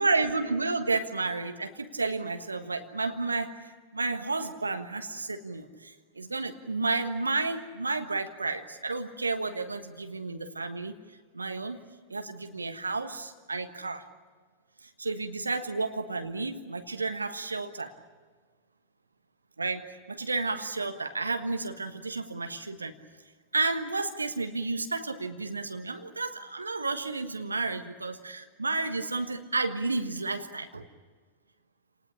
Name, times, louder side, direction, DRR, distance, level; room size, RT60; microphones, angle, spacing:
voice 1, 0.0-10.9 11.3-11.8 12.1-14.1 14.8-17.9 19.6-23.0 23.5-30.9, right 3 dB, 80° right, 7 dB, 1.4 m, -31 dB
28.5 x 19.5 x 10.0 m, 1.4 s
figure-of-eight pair, 90°, 0 cm